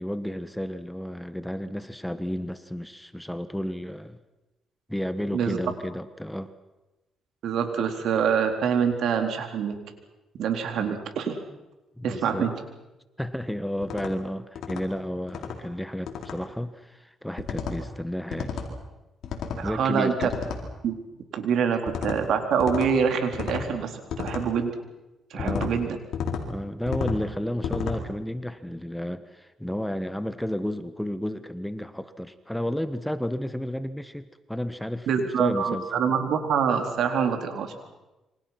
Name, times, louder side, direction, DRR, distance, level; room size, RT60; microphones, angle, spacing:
voice 1, 0.0-4.2 4.9-6.5 10.8-10.9 12.0-12.5 13.2-18.6 19.6-20.3 25.3-25.7 26.5-35.8, equal, 5° left, 12 dB, 1.3 m, -32 dB
voice 2, 7.4-9.7 10.4-11.4 12.0-12.5 19.6-20.3 20.8-20.9 21.3-24.7 25.3-26.0 35.1-37.7, right 7 dB, 75° right, 5 dB, 3.9 m, -25 dB
sound 1, 13.8-14.1 14.5-14.8 15.3-15.6 16.1-16.4 17.4-17.8 18.3-18.7 19.2-19.6 20.2-20.6 21.9-22.2 22.6-22.9 23.3-23.7 24.1-24.4 25.4-25.7 26.1-26.4 26.9-27.2 27.6-28.0, left 6 dB, 70° left, 4.3 m, -31 dB
28.0 x 25.0 x 6.0 m, 1.0 s
cardioid pair, 90°, 0 cm